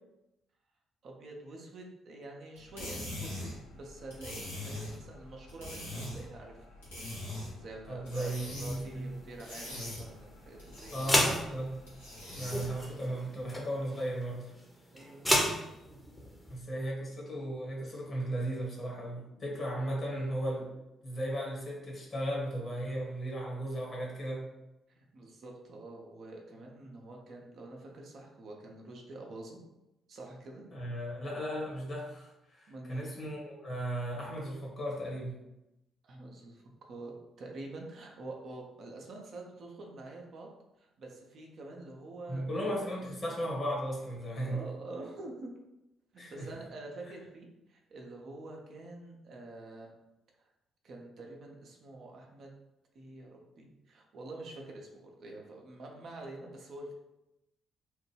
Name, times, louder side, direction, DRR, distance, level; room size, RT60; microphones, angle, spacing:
voice 1, 1.0-6.6 7.6-10.9 14.9-15.2 24.9-29.6 30.1-30.6 32.7-33.1 36.0-40.5 40.8-42.9 44.4-45.5 46.1-50.0 50.4-50.5 50.8-52.5 52.9-56.9, right 2 dB, 55° right, 0 dB, 0.6 m, -47 dB
sound 1, 2.6-12.9, left 1 dB, 85° left, 1.0 m, -43 dB
voice 2, 7.9-9.1 10.9-11.8 12.4-14.5 16.5-20.7 21.0-24.4 30.7-35.3 42.3-44.7 46.2-46.6, right 1 dB, 45° left, -2 dB, 1.2 m, -36 dB
sound 2, 8.8-16.5, left 1 dB, 10° left, 0.8 m, -34 dB
3.1 x 2.1 x 3.2 m, 0.92 s
figure-of-eight pair, 45°, 0 cm